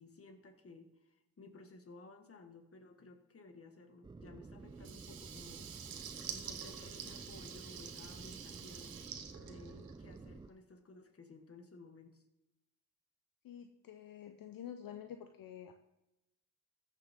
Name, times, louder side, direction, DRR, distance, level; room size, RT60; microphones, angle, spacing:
voice 1, 0.0-6.0 6.3-9.0 9.4-12.2, left 3 dB, 40° left, 6 dB, 1.6 m, -56 dB
sound 1, 4.0-10.5, right 3 dB, 15° right, 0.3 m, -52 dB
Water tap faucet / Liquid, 4.8-10.3, right 8 dB, 75° right, 1.2 m, -48 dB
voice 2, 13.4-15.7, left 9 dB, 65° left, 6 dB, 0.7 m, -48 dB
14.5 x 6.8 x 3.6 m, 0.93 s
cardioid pair, 75°, 36 cm